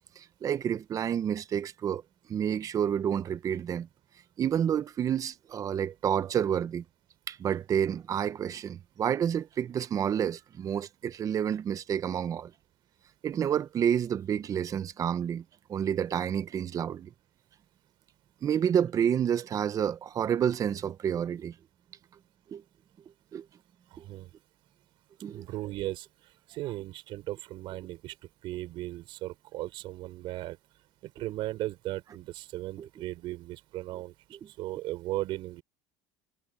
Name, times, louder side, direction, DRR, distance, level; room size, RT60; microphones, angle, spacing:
voice 1, 0.2-2.0 2.3-3.9 4.4-6.8 7.3-12.5 13.2-15.4 15.7-17.1 18.4-21.5 22.5-22.6 23.3-23.5 24.0-24.1 25.2-25.5 32.8-32.9 34.3-34.5, right 9 dB, 35° right, 0.9 m, -29 dB
voice 2, 23.9-24.3 25.3-26.1 26.5-28.1 28.4-30.6 31.0-34.1 34.5-35.6, right 16 dB, 60° right, 4.3 m, -37 dB
supercardioid pair, 110°, 10 cm